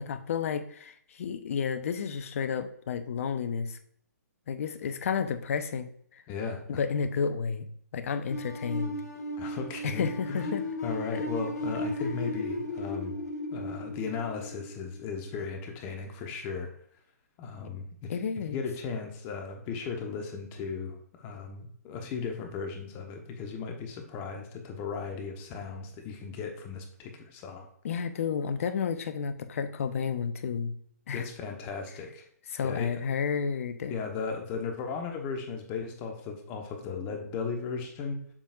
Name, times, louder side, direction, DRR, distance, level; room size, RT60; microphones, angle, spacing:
voice 1, 0.0-3.8 4.5-6.2 6.7-7.7 7.9-9.0 9.8-10.6 11.1-11.2 18.1-18.6 27.8-30.7 31.1-31.2 32.5-34.0, left 6 dB, 55° left, 9 dB, 0.8 m, -31 dB
voice 2, 6.3-6.8 9.4-10.6 10.8-13.2 13.5-16.7 17.4-18.1 18.5-27.6 31.1-32.3 32.6-32.9 33.9-38.2, left 5 dB, 25° left, 3 dB, 1.1 m, -36 dB
sound 1, 8.3-15.2, left 1 dB, 75° left, 1.6 m, -35 dB
7.3 x 5.3 x 2.4 m, 0.63 s
hypercardioid pair, 140°, 9 cm